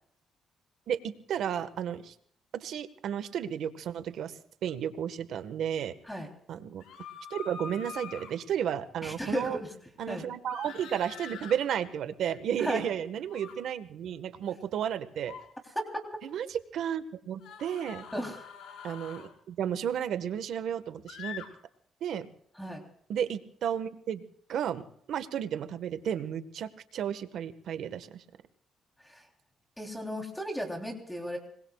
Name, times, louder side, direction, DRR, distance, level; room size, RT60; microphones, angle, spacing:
voice 1, 0.9-2.1 2.5-4.3 4.6-5.9 6.5-6.8 7.3-9.6 10.0-15.4 16.2-16.5 16.7-18.0 18.8-21.4 22.0-22.3 23.1-24.2 24.5-24.8 25.1-28.2, right 9 dB, 75° right, 11 dB, 1.4 m, -33 dB
sound 1, 6.8-8.3 10.5-11.6 13.3-13.5 15.1-15.5 17.4-19.3 21.1-21.5, left 7 dB, 85° left, 4.8 m, -44 dB
voice 2, 9.0-9.7 10.1-10.3 12.6-12.8 15.7-16.0 18.1-18.5 22.5-22.8 29.0-29.3 29.8-31.4, equal, 5° left, 2 dB, 3.3 m, -35 dB
26.5 x 21.5 x 2.4 m, 0.65 s
cardioid pair, 90°, 0 cm